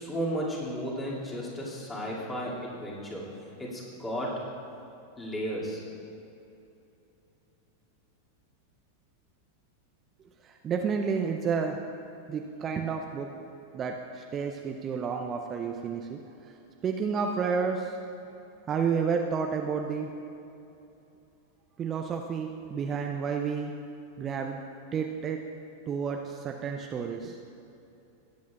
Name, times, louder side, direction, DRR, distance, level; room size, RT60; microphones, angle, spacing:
voice 1, 0.0-3.2 3.6-4.3 5.2-5.8, equal, 15° left, -5 dB, 2.3 m, -34 dB
voice 2, 10.4-11.8 12.3-13.3 13.7-16.5 16.8-18.0 18.7-20.1 21.8-23.7 24.2-24.6 24.9-25.4 25.9-27.4, right 6 dB, 25° right, 3 dB, 0.5 m, -30 dB
20.0 x 8.4 x 2.4 m, 2.8 s
figure-of-eight pair, 90°, 0 cm